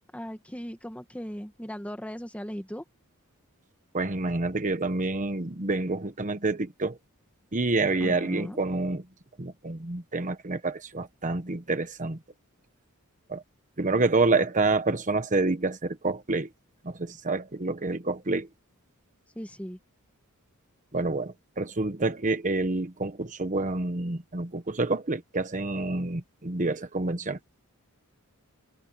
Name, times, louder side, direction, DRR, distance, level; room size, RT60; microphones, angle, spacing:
voice 1, 0.1-2.8 8.0-8.6 19.3-19.8, equal, 5° left, 1.6 m, -38 dB
voice 2, 3.9-7.0 7.5-9.0 9.4-12.2 13.3-13.4 13.8-16.5 16.8-18.5 20.9-27.4, right 3 dB, 35° right, 1.2 m, -28 dB
head